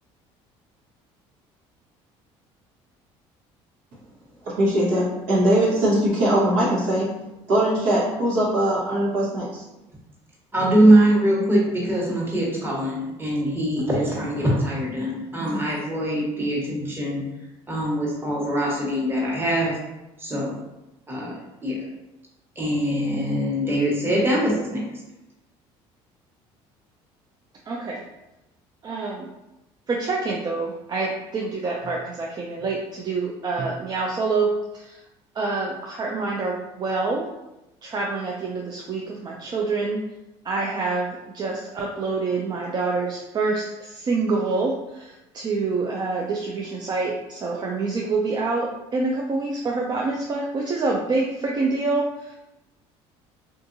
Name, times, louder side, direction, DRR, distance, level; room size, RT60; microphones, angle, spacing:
voice 1, 4.4-7.1 7.5-9.6 15.4-15.6, right 1 dB, 75° right, -6 dB, 1.3 m, -21 dB
voice 2, 10.5-17.2 17.7-19.8 20.2-20.5 21.1-21.3 21.6-21.8 22.6-24.8, right 1 dB, 20° right, -4 dB, 1.2 m, -22 dB
voice 3, 27.7-28.0 28.8-29.2 29.9-34.6 35.4-37.2 37.8-40.0 40.5-43.6 44.0-44.7 45.3-52.0, right 3 dB, 35° right, -1 dB, 0.4 m, -26 dB
3.6 x 2.5 x 2.6 m, 0.95 s
supercardioid pair, 90°, 12 cm